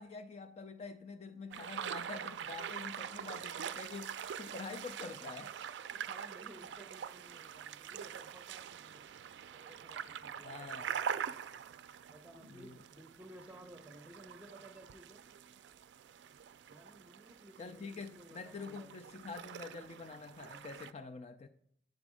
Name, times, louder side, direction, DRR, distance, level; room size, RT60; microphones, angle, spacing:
voice 1, 0.0-5.5 10.4-10.9 12.5-12.8 17.6-21.5, left 4 dB, 35° left, 0.3 m, -46 dB
sound 1, 1.5-20.9, right 8 dB, 80° right, 0.3 m, -44 dB
voice 2, 5.9-9.1 9.5-10.9 12.1-15.4 16.7-19.0, right 1 dB, 10° right, 0.8 m, -56 dB
9.4 x 5.1 x 4.8 m
head